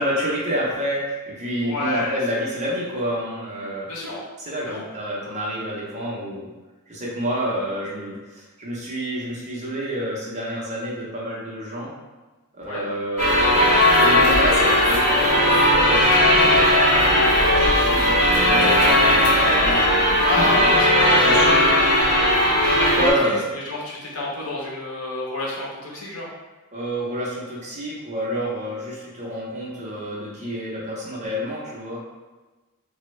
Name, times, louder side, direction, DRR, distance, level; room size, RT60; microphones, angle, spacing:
voice 1, 0.0-3.9 4.4-6.5 6.9-11.9 12.5-13.3 14.0-17.4 17.8-19.9 20.2-20.3 20.7-21.4 22.9-23.5 26.7-32.0, equal, 30° right, -5 dB, 0.7 m, -28 dB
voice 2, 1.6-2.2 3.9-4.2 4.5-4.8 12.6-12.9 20.3-22.3 22.8-26.3, left 2 dB, 70° left, -5 dB, 0.9 m, -29 dB
sound 1, 13.2-23.1, left 1 dB, 40° left, 1.1 m, -17 dB
3.0 x 2.3 x 3.1 m, 1.2 s
head